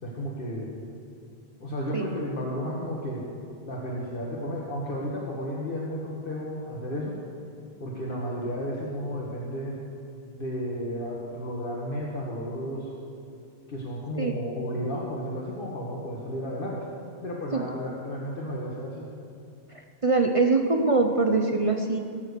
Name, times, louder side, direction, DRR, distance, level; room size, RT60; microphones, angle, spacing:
voice 1, 0.0-0.7 1.6-3.3 3.6-7.2 7.8-9.8 10.3-12.9 13.7-16.9 17.2-19.1, equal, 60° left, -4 dB, 1.8 m, -33 dB
voice 2, 20.0-22.0, right 3 dB, 35° right, 3 dB, 0.8 m, -23 dB
18.5 x 7.4 x 6.8 m, 2.4 s
omnidirectional pair, 1.0 m